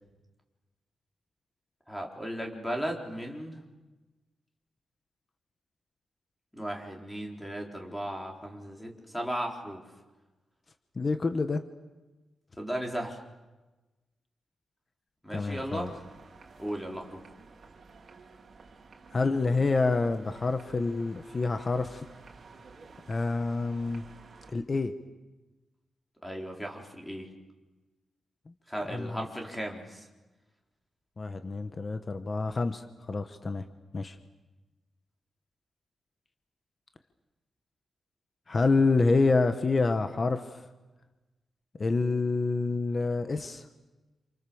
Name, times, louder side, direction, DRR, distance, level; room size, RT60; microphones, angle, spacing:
voice 1, 1.9-3.6 6.5-9.8 12.6-13.2 15.2-16.0 16.6-17.2 26.2-27.3 28.7-30.1, equal, 5° left, 1 dB, 4.2 m, -36 dB
voice 2, 11.0-11.6 15.3-15.9 19.1-22.1 23.1-24.0 24.5-24.9 28.9-29.3 31.2-33.6 33.9-34.2 38.5-40.6 41.8-43.6, left 3 dB, 30° left, 8 dB, 1.2 m, -27 dB
sound 1, 15.3-24.5, right 4 dB, 45° right, 3.7 m, -52 dB
29.0 x 28.0 x 7.1 m, 1.1 s
wide cardioid pair, 150°, 0 cm